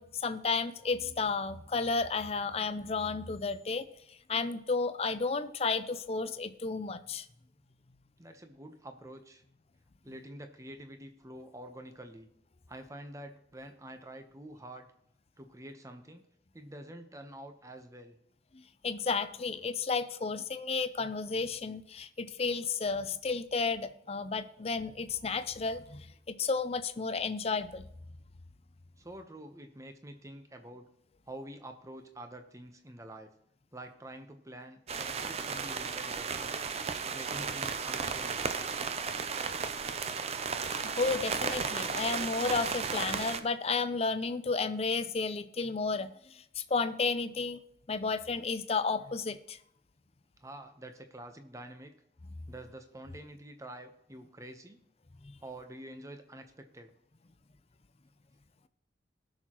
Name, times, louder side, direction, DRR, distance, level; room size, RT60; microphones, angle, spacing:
voice 1, 0.0-7.3 18.8-27.9 40.8-47.6 47.9-49.6 55.2-55.3, left 4 dB, 35° left, 11 dB, 0.5 m, -32 dB
voice 2, 8.2-9.4 10.0-12.3 12.7-14.9 15.4-16.2 16.5-18.2 29.0-30.9 31.3-33.3 33.7-36.7 37.1-38.4 50.4-51.9 52.5-54.8 55.4-56.9, right 1 dB, 20° right, 6 dB, 0.9 m, -47 dB
sound 1, 34.9-43.4, right 5 dB, 35° right, 0.5 m, -34 dB
19.5 x 6.5 x 3.0 m, 0.76 s
head